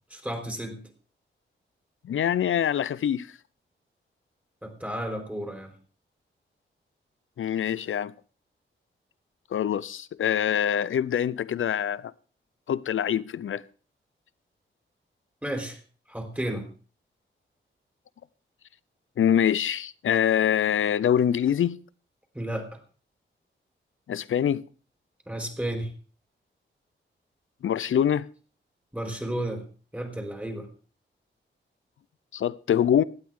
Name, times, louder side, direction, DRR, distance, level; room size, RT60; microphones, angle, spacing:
voice 1, 0.1-0.8 4.6-5.7 15.4-15.8 16.1-16.6 22.3-22.8 25.3-25.9 28.9-29.6 29.9-30.7, right 1 dB, 5° right, 3.9 m, -32 dB
voice 2, 2.0-3.3 7.4-8.1 9.5-12.1 12.7-13.6 19.2-21.8 24.1-24.6 27.6-28.3 32.3-33.0, left 9 dB, 75° left, 0.6 m, -24 dB
17.5 x 12.0 x 3.7 m
wide cardioid pair, 85°, 21 cm